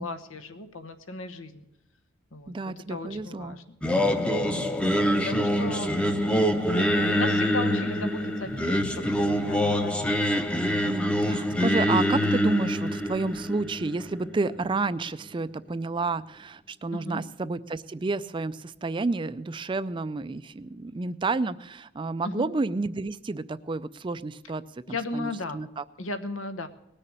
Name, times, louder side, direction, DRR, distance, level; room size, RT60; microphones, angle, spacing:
voice 1, 0.0-1.6 2.3-3.8 4.3-4.7 5.2-6.5 7.2-11.4 16.9-17.2 22.2-22.5 24.9-25.6 26.0-26.7, left 2 dB, 90° left, 9 dB, 1.1 m, -36 dB
voice 2, 2.5-3.6 10.8-25.8, right 3 dB, 25° right, 15 dB, 0.4 m, -30 dB
Singing, 3.8-14.9, equal, 5° left, 0.7 m, -25 dB
19.5 x 6.7 x 7.2 m, 0.89 s
head